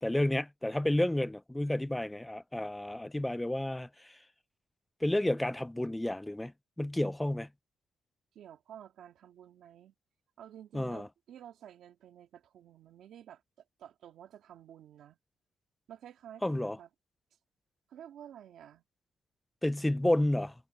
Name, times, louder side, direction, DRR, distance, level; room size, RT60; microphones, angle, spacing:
voice 1, 0.0-4.2 5.0-6.5 6.8-7.5 10.7-11.1 16.4-16.8 19.6-20.5, left 1 dB, 10° left, 0.4 m, -31 dB
voice 2, 8.3-9.9 10.4-13.4 13.8-15.2 15.9-16.9 17.9-18.8, right 10 dB, 70° right, 2.0 m, -51 dB
cardioid pair, 90°, 0 cm